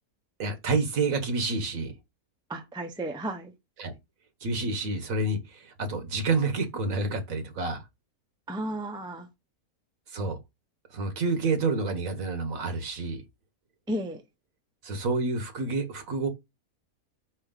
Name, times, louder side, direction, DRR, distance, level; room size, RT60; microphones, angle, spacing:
voice 1, 0.4-1.9 3.8-3.9 4.4-7.8 10.1-10.4 10.9-13.2 14.8-16.3, right 3 dB, 65° right, 1.6 m, -28 dB
voice 2, 2.5-3.5 8.5-9.3 13.9-14.2, right 1 dB, 5° right, 0.6 m, -33 dB
5.3 x 4.6 x 3.8 m
omnidirectional pair, 1.5 m